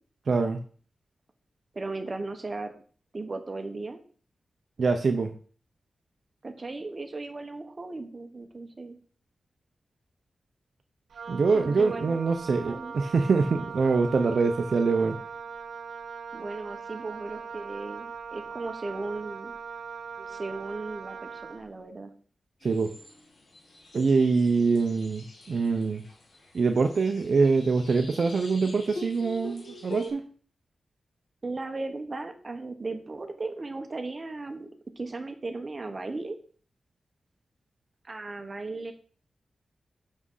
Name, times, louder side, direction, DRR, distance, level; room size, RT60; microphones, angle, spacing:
voice 1, 0.3-0.6 4.8-5.3 11.3-15.2 22.6-22.9 23.9-26.0 26.5-30.3, right 4 dB, 55° right, 6 dB, 0.7 m, -24 dB
voice 2, 1.7-2.7 3.1-4.0 6.4-9.0 11.5-12.2 12.7-12.9 16.3-19.6 20.3-22.1 31.4-34.7 35.0-36.4 38.0-38.9, right 3 dB, 30° right, 5 dB, 1.1 m, -36 dB
Wind instrument woodwind instrument, 11.1-21.7, right 6 dB, 85° right, 0.9 m, -40 dB
sound 1, 22.6-30.1, left 1 dB, 90° left, 3.0 m, -45 dB
6.3 x 6.2 x 5.5 m, 0.43 s
wide cardioid pair, 155°, 0 cm